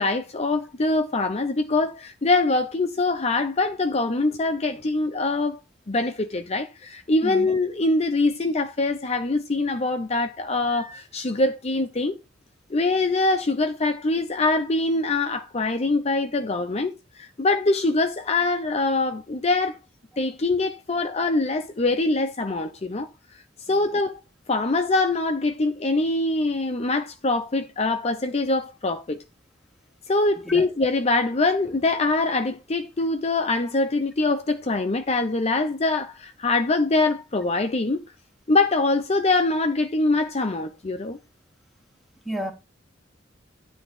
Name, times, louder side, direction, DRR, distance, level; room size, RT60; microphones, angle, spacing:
voice 1, 0.0-5.6 5.9-12.2 12.7-19.8 20.2-23.1 23.7-24.2 24.5-29.2 30.1-38.0 38.5-41.2, left 2 dB, 35° left, 0.7 m, -23 dB
voice 2, 7.2-7.5 23.7-23.8 30.4-30.7 42.2-42.5, right 1 dB, ahead, 1.6 m, -31 dB
10.0 x 3.5 x 6.9 m
head